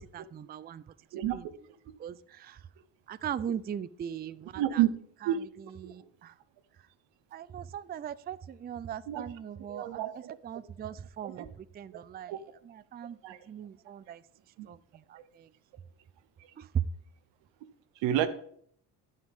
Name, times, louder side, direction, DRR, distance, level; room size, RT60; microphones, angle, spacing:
voice 1, 0.1-0.8 1.3-1.5 2.0-2.7 3.1-4.8 5.2-6.4 6.8-6.9 7.3-12.4 12.6-13.2 13.5-14.2 14.7-15.5 16.6-16.9, right 9 dB, 25° right, 17 dB, 0.4 m, -39 dB
voice 2, 4.6-4.9 5.2-5.4 5.8-6.1 9.1-9.2 9.7-10.1 11.2-11.5 11.9-12.0 12.3-12.4 13.2-13.4 14.6-14.7 18.0-18.3, right 12 dB, 90° right, 13 dB, 1.0 m, -29 dB
15.0 x 6.4 x 3.5 m, 0.64 s
cardioid pair, 90°, 43 cm